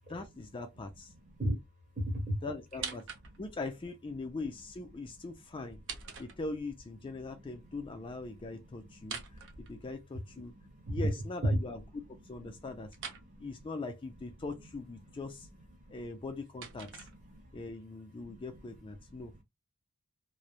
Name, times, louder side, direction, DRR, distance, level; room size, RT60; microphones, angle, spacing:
voice 1, 0.1-1.1 2.4-3.0 3.4-5.8 6.2-9.4 9.7-10.5 10.9-11.8 12.2-13.0 13.4-15.5 15.9-17.1 17.5-19.3, left 3 dB, 25° left, 0.3 m, -41 dB
voice 2, 2.0-2.5 2.8-2.9 7.3-7.4 8.4-9.6 10.6-11.0 12.5-12.7 13.3-13.5 15.8-15.9 17.0-17.6 18.3-18.4 19.1-19.3, equal, 35° right, 1.0 m, -39 dB
sound 1, 2.7-3.6 5.6-6.8 9.0-10.3 12.9-13.3 16.0-17.6, right 6 dB, 60° right, 0.6 m, -45 dB
3.1 x 2.1 x 2.3 m
head